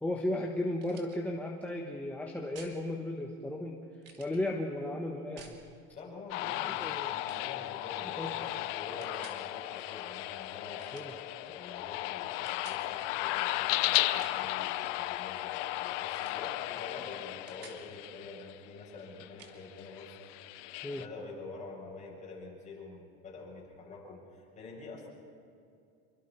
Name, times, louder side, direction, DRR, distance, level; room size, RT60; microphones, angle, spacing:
voice 1, 0.0-3.8 4.2-5.6 6.4-7.1 8.2-8.4 10.9-11.1 20.8-21.0, left 1 dB, 5° left, -1 dB, 1.2 m, -35 dB
sound 1, 0.8-1.2 2.5-2.8 4.0-4.4 5.4-5.6 6.7-7.0 7.3-7.5 9.0-9.4 10.8-11.2 12.5-12.8 14.0-14.5 16.1-16.4 16.8-16.9 17.2-17.8 19.4-19.6, right 5 dB, 40° right, 2.8 m, -53 dB
voice 2, 5.9-10.8 11.4-20.1 20.5-20.7 20.9-25.1, left 3 dB, 20° left, -3 dB, 7.1 m, -47 dB
sound 2, 6.3-18.5 19.2-21.0, left 16 dB, 75° left, 0.8 m, -35 dB
27.0 x 23.0 x 4.5 m, 2.4 s
supercardioid pair, 150°, 36 cm